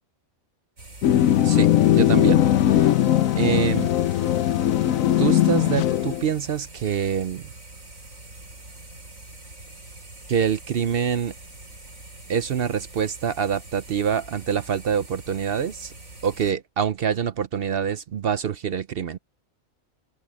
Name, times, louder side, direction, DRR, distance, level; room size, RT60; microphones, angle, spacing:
sound 1, 0.8-16.5, right 2 dB, 75° right, 5.0 m, -44 dB
sound 2, 1.0-6.3, left 12 dB, 80° left, 1.1 m, -19 dB
voice 1, 1.4-2.4 2.7-2.9 3.4-3.9 5.2-7.4 10.3-11.3 12.3-15.9 16.2-19.2, right 8 dB, 55° right, 0.7 m, -25 dB
open air
omnidirectional pair, 1.4 m